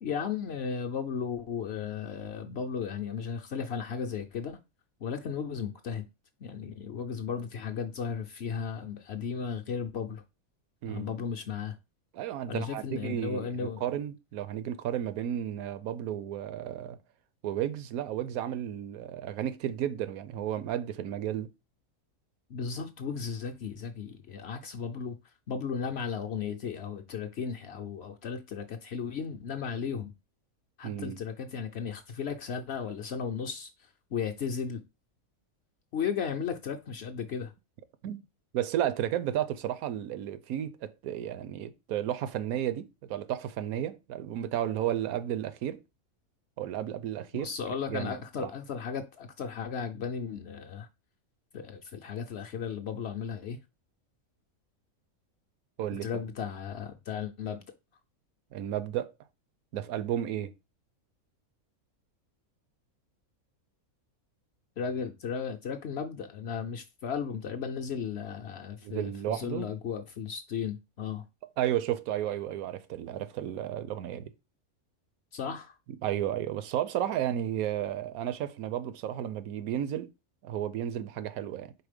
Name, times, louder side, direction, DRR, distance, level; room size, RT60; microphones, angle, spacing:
voice 1, 0.0-4.6 5.0-6.1 6.4-10.2 10.9-11.8 12.5-13.8 22.5-25.2 25.5-30.1 30.8-33.7 34.1-34.8 35.9-37.5 47.3-50.9 51.5-53.6 56.0-57.6 64.8-71.2 75.3-75.7, left 6 dB, 60° left, 0.7 m, -35 dB
voice 2, 12.1-17.0 17.4-21.5 30.8-31.2 38.0-38.2 38.5-45.8 46.6-47.5 47.9-48.5 55.8-56.1 58.5-59.1 59.7-60.5 68.8-69.7 71.6-74.3 76.0-80.1 80.4-81.7, right 11 dB, 80° right, 1.1 m, -33 dB
4.8 x 3.9 x 5.0 m
omnidirectional pair, 1.5 m